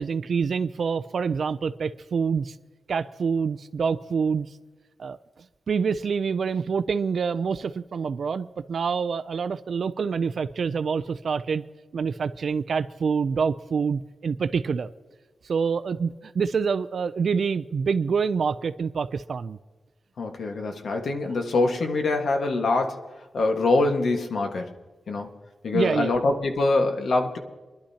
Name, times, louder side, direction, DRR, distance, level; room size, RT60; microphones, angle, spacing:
voice 1, 0.0-2.5 2.9-4.5 5.0-5.2 5.7-11.6 11.9-14.9 15.4-19.6 25.7-26.2, right 5 dB, 65° right, 11 dB, 0.4 m, -26 dB
voice 2, 20.2-23.0 23.3-24.7 25.1-25.3 25.6-27.4, left 3 dB, 75° left, 4 dB, 1.5 m, -24 dB
24.5 x 11.5 x 2.9 m, 1.3 s
wide cardioid pair, 150°, 0 cm